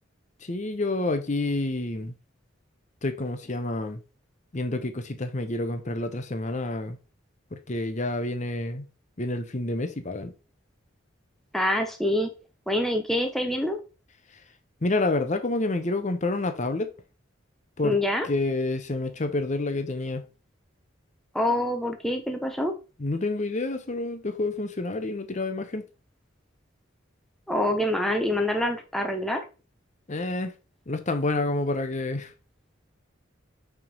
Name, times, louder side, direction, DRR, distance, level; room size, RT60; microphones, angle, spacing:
voice 1, 0.4-2.1 3.0-4.0 4.5-7.0 7.5-8.9 9.2-10.3 14.8-16.9 17.8-18.0 18.2-20.3 23.0-25.8 30.1-30.5 30.9-32.3, left 2 dB, 35° left, 0.8 m, -28 dB
voice 2, 11.5-12.3 12.7-13.8 17.8-18.3 21.3-22.7 27.5-29.4, left 1 dB, ahead, 0.8 m, -26 dB
5.8 x 3.6 x 5.3 m
head